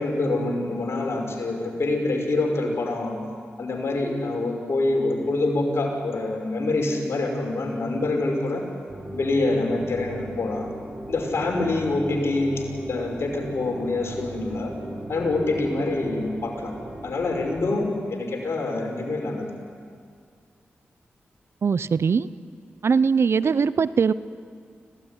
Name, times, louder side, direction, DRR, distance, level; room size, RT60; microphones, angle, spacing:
voice 1, 0.0-3.2 3.6-8.7 9.1-10.7 11.1-14.8 15.1-16.7 17.0-19.5, left 2 dB, 65° left, 1 dB, 5.4 m, -26 dB
sound 1, 8.9-17.6, right 1 dB, 30° right, 6.2 m, -37 dB
voice 2, 21.6-22.3 22.8-24.1, right 5 dB, 65° right, 16 dB, 0.7 m, -21 dB
25.5 x 16.5 x 9.8 m, 2.2 s
supercardioid pair, 40°, 5 cm